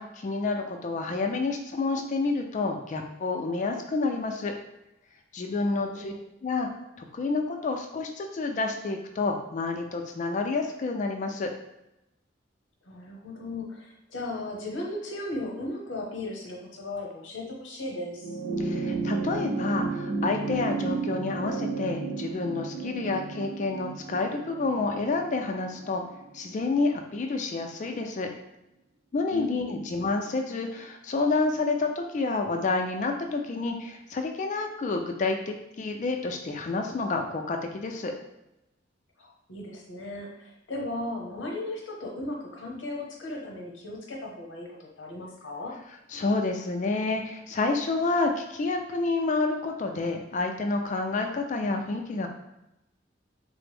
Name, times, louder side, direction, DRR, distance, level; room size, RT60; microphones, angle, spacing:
voice 1, 0.0-4.5 5.3-6.1 6.4-6.7 7.0-11.5 18.6-26.0 26.3-28.3 29.1-38.1 46.1-52.3, left 3 dB, 40° left, 4 dB, 0.3 m, -29 dB
voice 2, 5.6-6.2 12.8-18.4 29.3-29.9 39.2-45.7, left 2 dB, 85° left, 0 dB, 0.7 m, -36 dB
sound 1, 18.1-26.8 28.0-28.1, right 4 dB, 85° right, 0.4 m, -33 dB
3.3 x 2.0 x 3.4 m, 0.88 s
head